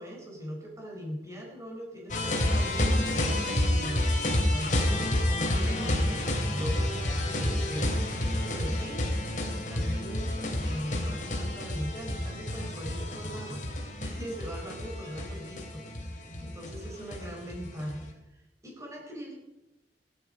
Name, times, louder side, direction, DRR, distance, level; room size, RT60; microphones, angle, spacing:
voice 1, 0.0-9.0 9.7-13.6 14.0-18.2 18.6-19.4, equal, 15° right, -1 dB, 4.7 m, -40 dB
sound 1, 2.1-18.0, left 1 dB, 45° left, 3.1 m, -29 dB
16.0 x 12.5 x 5.4 m, 0.98 s
head